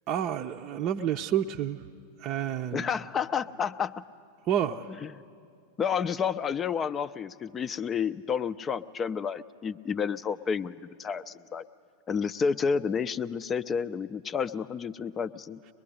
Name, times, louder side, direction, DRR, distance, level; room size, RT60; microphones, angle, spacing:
voice 1, 0.1-1.8 2.2-2.9 4.5-4.9, right 10 dB, 35° right, 2 dB, 0.6 m, -29 dB
voice 2, 2.7-4.0 5.0-5.1 5.8-11.6 12.1-15.6, left 6 dB, 20° left, 14 dB, 0.5 m, -30 dB
23.5 x 21.0 x 10.0 m, 2.3 s
figure-of-eight pair, 90°, 0 cm